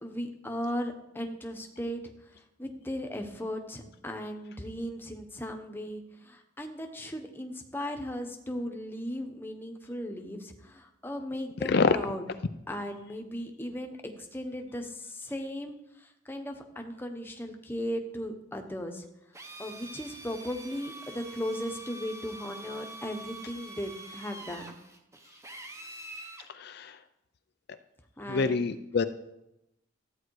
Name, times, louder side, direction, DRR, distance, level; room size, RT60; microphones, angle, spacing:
voice 1, 0.0-2.0 2.6-12.2 12.7-19.1 19.6-24.8 28.2-28.7, equal, 10° left, 4 dB, 1.1 m, -37 dB
Drill, 19.3-26.5, right 1 dB, 15° right, 1.0 m, -45 dB
voice 2, 26.5-27.0 28.3-29.0, left 4 dB, 55° left, 10 dB, 0.5 m, -26 dB
13.5 x 9.2 x 4.8 m, 0.88 s
head